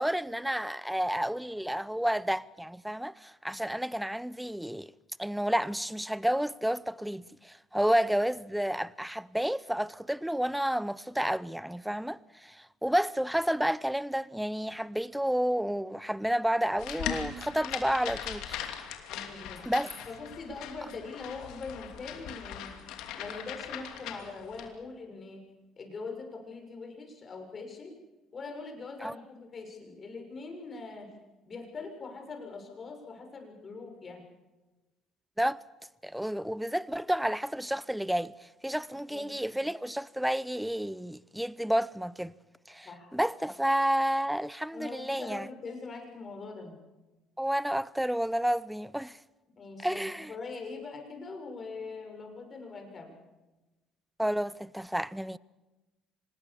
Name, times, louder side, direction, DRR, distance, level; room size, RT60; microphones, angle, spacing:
voice 1, 0.0-4.9 5.2-18.6 19.7-19.9 29.0-29.1 35.4-35.6 36.0-38.3 38.6-42.3 42.7-45.5 47.4-49.2 49.8-50.3 54.2-55.4, equal, 5° right, 0.7 m, -30 dB
sound 1, 16.8-24.7, left 9 dB, 75° left, 2.8 m, -40 dB
voice 2, 19.1-19.7 20.1-22.7 23.2-25.4 25.8-28.0 28.3-31.1 31.5-34.3 38.9-39.3 42.8-43.1 44.7-46.8 49.6-50.0 50.3-53.1, left 4 dB, 40° left, 6.6 m, -42 dB
25.5 x 20.0 x 7.1 m
supercardioid pair, 80°, 0 cm